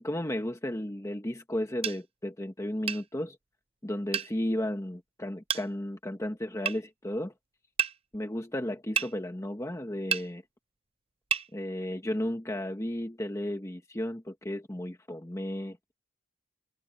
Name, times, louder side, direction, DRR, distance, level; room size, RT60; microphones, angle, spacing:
voice 1, 0.0-3.4 3.8-7.3 8.1-10.4 11.5-16.0, left 1 dB, 15° left, 1.2 m, -34 dB
sound 1, 1.8-2.0 2.9-3.0 4.1-4.3 5.5-5.7 6.7-6.8 7.8-8.0 9.0-9.1 10.1-10.3 11.3-11.5, right 7 dB, 25° right, 0.6 m, -29 dB
head